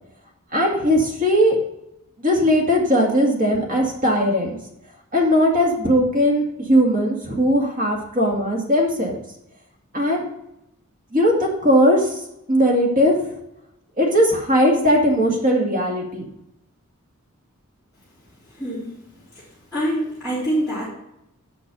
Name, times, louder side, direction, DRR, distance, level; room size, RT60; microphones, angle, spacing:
voice 1, 0.5-1.6 2.2-4.6 5.1-9.2 9.9-10.2 11.1-12.2 12.5-13.2 14.0-16.3, equal, 40° right, -1 dB, 2.2 m, -19 dB
voice 2, 18.6-19.0 19.3-19.4 19.7-20.9, right 1 dB, 5° right, -13 dB, 3.5 m, -25 dB
8.4 x 6.0 x 5.3 m, 0.82 s
head